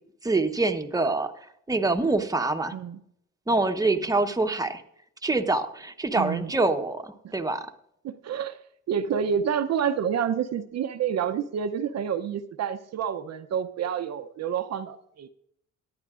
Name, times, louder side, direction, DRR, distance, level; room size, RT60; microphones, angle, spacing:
voice 1, 0.2-1.3 1.7-2.7 3.5-4.8 5.2-7.7, right 3 dB, 10° right, 5 dB, 0.9 m, -25 dB
voice 2, 6.2-6.5 7.2-7.3 8.0-8.6 8.9-15.3, right 8 dB, 60° right, 8 dB, 0.7 m, -28 dB
18.0 x 10.5 x 2.4 m, 0.74 s
cardioid pair, 90°, 30 cm